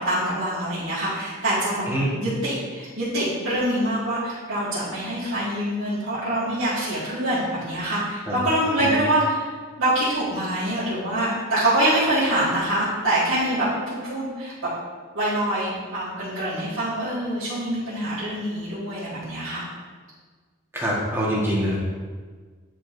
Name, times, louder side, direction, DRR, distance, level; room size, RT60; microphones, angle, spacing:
voice 1, 0.0-1.9 2.2-14.5 15.1-19.7, right 1 dB, 75° right, -13 dB, 2.0 m, -25 dB
voice 2, 20.7-21.8, equal, 10° right, -6 dB, 1.5 m, -24 dB
9.5 x 4.8 x 2.7 m, 1.5 s
head